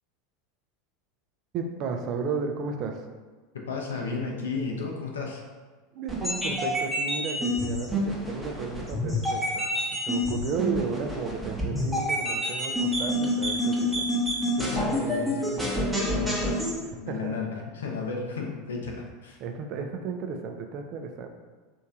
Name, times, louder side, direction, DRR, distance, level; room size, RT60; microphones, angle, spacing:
voice 1, 1.5-3.0 5.9-14.0 16.8-17.4 19.4-21.3, right 5 dB, 45° right, 4 dB, 0.4 m, -34 dB
voice 2, 3.5-5.4 11.7-11.8 14.6-19.4, left 4 dB, 70° left, 0 dB, 0.6 m, -34 dB
sound 1, 6.1-16.8, equal, 5° right, 0.9 m, -28 dB
3.0 x 2.6 x 3.6 m, 1.4 s
figure-of-eight pair, 80°, 0 cm